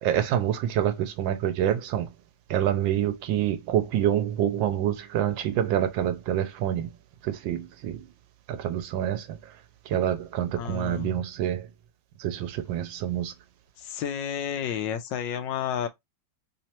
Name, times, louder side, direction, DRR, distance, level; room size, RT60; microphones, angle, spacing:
voice 1, 0.0-2.1 2.5-6.9 7.2-8.1 8.5-9.6 9.8-11.7 12.2-13.3, right 10 dB, 80° right, 1.4 m, -27 dB
voice 2, 10.6-11.2 13.8-15.9, left 9 dB, 75° left, 1.2 m, -31 dB
3.5 x 3.0 x 2.8 m
omnidirectional pair, 2.1 m